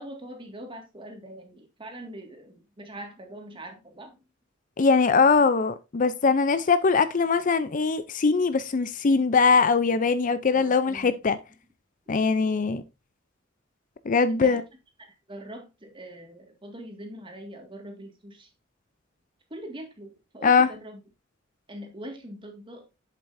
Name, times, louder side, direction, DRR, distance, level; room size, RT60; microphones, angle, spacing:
voice 1, 0.0-4.2 10.5-11.1 14.3-14.6 15.0-18.5 19.5-21.0 21.7-22.9, right 1 dB, 25° right, 1.9 m, -42 dB
voice 2, 4.8-11.4 12.1-12.8 14.1-14.6 20.4-20.7, left 4 dB, 40° left, 0.5 m, -21 dB
7.9 x 7.5 x 2.6 m
head